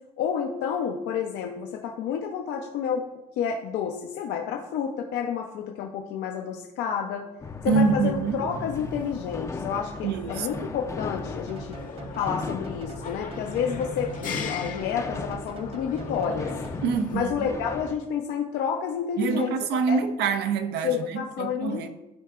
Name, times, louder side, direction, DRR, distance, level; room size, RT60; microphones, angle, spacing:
voice 1, 0.2-3.1 3.4-7.3 7.6-11.8 12.2-16.5 17.1-20.0 20.8-21.9, left 7 dB, 85° left, 0.6 m, -30 dB
sound 1, 7.4-18.0, left 3 dB, 20° left, 0.5 m, -37 dB
voice 2, 7.7-8.5 10.0-10.7 16.8-17.6 19.2-21.9, right 5 dB, 80° right, 0.7 m, -26 dB
sound 2, 7.9-17.3, left 6 dB, 55° left, 0.9 m, -40 dB
sound 3, 11.5-17.2, right 4 dB, 35° right, 0.6 m, -42 dB
12.5 x 4.6 x 2.4 m
cardioid pair, 110°, 17 cm